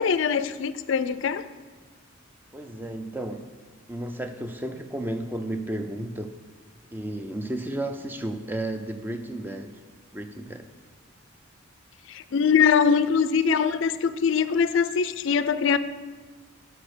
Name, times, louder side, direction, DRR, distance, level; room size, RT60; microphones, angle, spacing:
voice 1, 0.0-1.4 12.1-15.8, left 6 dB, 60° left, 14 dB, 0.4 m, -22 dB
voice 2, 2.5-3.5 3.9-6.3 6.9-9.7 10.1-10.7, right 1 dB, 10° right, 7 dB, 0.4 m, -33 dB
6.2 x 5.4 x 6.6 m, 1.4 s
head